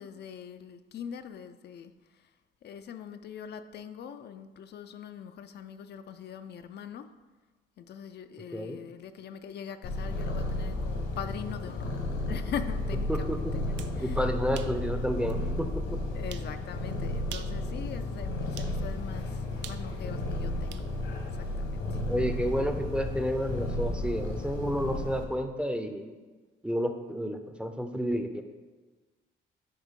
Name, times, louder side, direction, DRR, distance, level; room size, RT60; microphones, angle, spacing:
voice 1, 0.0-2.3 2.6-7.1 7.8-13.7 13.9-14.3 16.1-20.8 21.3-22.0, left 8 dB, 60° left, 9 dB, 0.4 m, -42 dB
Purr, 9.8-25.2, left 1 dB, 75° left, 1.2 m, -33 dB
voice 2, 13.1-13.5 14.0-16.0 22.1-26.1 26.6-28.4, equal, 5° right, 7 dB, 0.5 m, -31 dB
sound 1, 13.6-14.0 14.6-14.8 15.3-15.4 16.3-16.5 17.2-17.6 18.6-18.8 19.6-20.9, right 10 dB, 65° right, 0.4 m, -44 dB
9.5 x 3.5 x 3.7 m, 1.3 s
cardioid pair, 90°, 20 cm